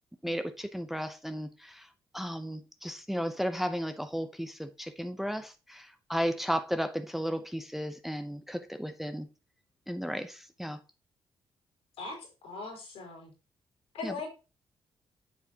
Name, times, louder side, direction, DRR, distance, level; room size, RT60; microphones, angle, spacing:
voice 1, 0.2-1.9 2.1-9.3 9.9-10.8 14.0-14.2, equal, ahead, 0.8 m, -34 dB
voice 2, 12.0-13.3 13.9-14.3, left 3 dB, 80° left, 4.2 m, -40 dB
8.4 x 7.0 x 2.9 m
supercardioid pair, 55°, 10 cm